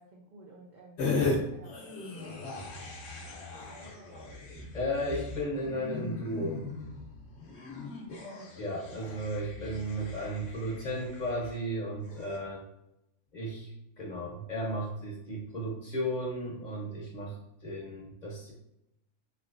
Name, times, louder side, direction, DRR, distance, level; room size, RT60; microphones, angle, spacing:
voice 1, 0.0-2.7 3.4-4.4 8.7-9.2, right 2 dB, 80° right, 0 dB, 0.4 m, -53 dB
sound 1, 1.0-1.4 1.6-11.6 12.0-12.4, left 3 dB, 60° left, 1.0 m, -37 dB
voice 2, 4.7-6.6 8.6-12.6 13.3-18.5, equal, 40° left, -3 dB, 0.9 m, -35 dB
3.3 x 2.9 x 2.5 m, 0.85 s
omnidirectional pair, 1.4 m